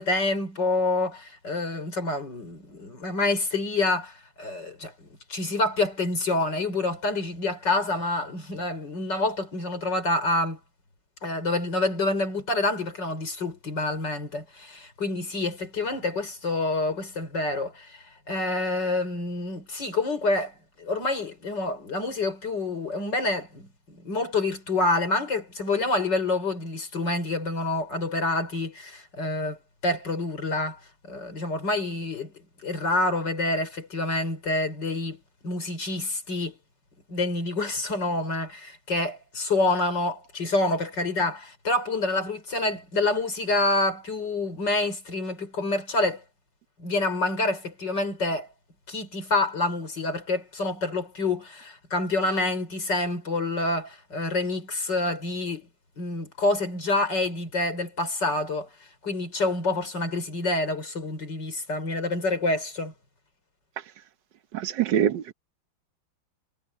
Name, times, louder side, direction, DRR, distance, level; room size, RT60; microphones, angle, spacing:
voice 1, 0.0-10.6 11.2-29.6 29.8-30.8 31.1-32.3 32.6-36.5 37.1-46.2 46.8-48.5 48.9-55.7 56.0-58.7 59.0-62.9, left 2 dB, 55° left, 5.7 m, -27 dB
voice 2, 64.5-65.3, right 9 dB, 65° right, 1.4 m, -24 dB
omnidirectional pair, 2.3 m